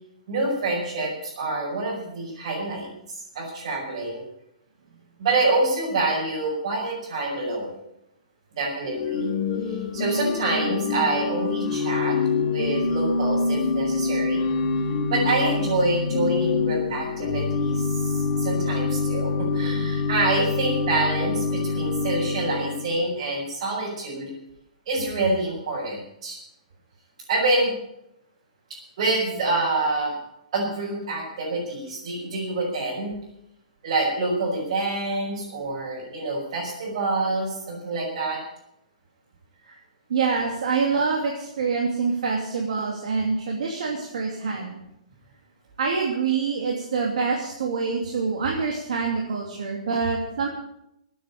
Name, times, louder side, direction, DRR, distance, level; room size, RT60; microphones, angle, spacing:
voice 1, 0.3-2.9 3.3-4.2 5.2-7.8 8.5-9.3 9.6-14.5 15.1-24.3 24.9-26.4 27.3-27.7 29.0-30.2 30.5-33.1 33.8-38.4, right 2 dB, 50° right, -6 dB, 5.7 m, -26 dB
Organ / Church bell, 8.8-23.0, left 4 dB, 35° left, 2.5 m, -26 dB
voice 2, 40.1-44.8 45.8-50.5, right 5 dB, 70° right, 0 dB, 2.8 m, -26 dB
14.0 x 9.3 x 8.3 m, 0.81 s
hypercardioid pair, 165°, 4 cm